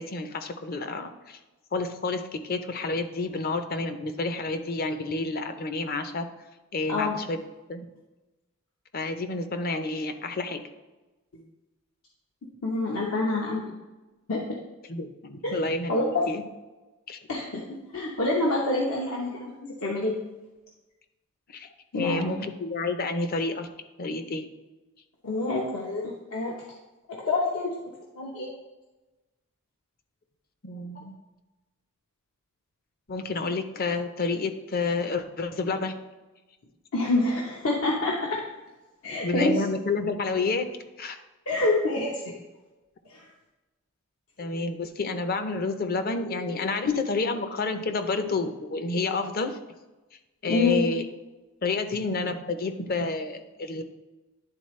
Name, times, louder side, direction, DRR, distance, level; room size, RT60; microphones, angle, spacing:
voice 1, 0.0-1.4 1.7-6.3 6.7-7.4 7.7-7.9 8.9-10.6 14.9-16.4 17.1-17.2 21.5-21.7 21.9-23.7 24.0-24.5 30.6-31.1 33.1-36.0 39.2-40.7 41.0-41.2 44.4-49.6 50.4-51.0 51.6-53.8, left 3 dB, 45° left, 8 dB, 0.6 m, -29 dB
voice 2, 12.6-13.6 14.3-14.5 15.4-15.5 15.9-16.0 17.3-17.5 17.9-20.2 21.9-22.4 25.2-26.5 27.1-28.5 36.9-38.4 39.0-39.6 41.5-42.3 43.1-43.3 50.5-50.8, left 2 dB, 80° left, -3 dB, 0.9 m, -27 dB
10.5 x 4.0 x 3.2 m, 1.1 s
head